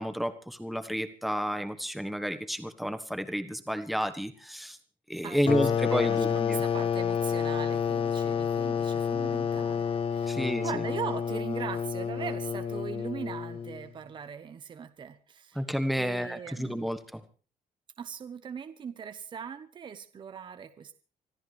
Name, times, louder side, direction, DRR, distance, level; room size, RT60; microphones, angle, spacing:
voice 1, 0.0-4.8 5.1-6.6 10.3-10.8 15.5-17.2, equal, ahead, 9 dB, 1.3 m, -31 dB
voice 2, 5.2-15.6 15.9-16.9 18.0-20.9, right 7 dB, 30° right, 10 dB, 1.0 m, -40 dB
sound 1, 5.5-13.9, left 7 dB, 40° left, 0.8 m, -29 dB
25.5 x 14.0 x 3.4 m, 0.39 s
cardioid pair, 165°, 15 cm